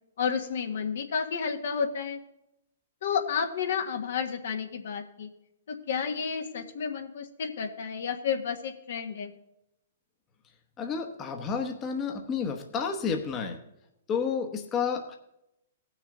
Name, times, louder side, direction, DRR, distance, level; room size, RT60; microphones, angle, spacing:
voice 1, 0.2-2.2 3.0-5.3 5.7-9.3, left 6 dB, 70° left, 5 dB, 1.5 m, -31 dB
voice 2, 10.8-13.6 14.1-15.2, left 6 dB, 25° left, 4 dB, 1.0 m, -30 dB
18.0 x 6.3 x 3.7 m, 0.84 s
hypercardioid pair, 140°, 0 cm